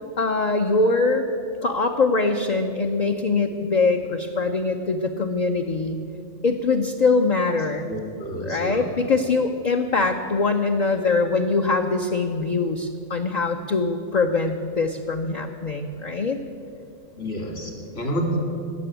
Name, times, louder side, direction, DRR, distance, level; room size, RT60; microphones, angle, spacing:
voice 1, 0.2-1.3 1.6-6.0 6.4-7.9 8.4-16.4, left 3 dB, 45° left, 3 dB, 0.6 m, -23 dB
voice 2, 7.9-8.9 17.2-18.4, equal, 60° left, 1 dB, 2.8 m, -29 dB
16.5 x 6.8 x 9.1 m, 2.6 s
omnidirectional pair, 1.4 m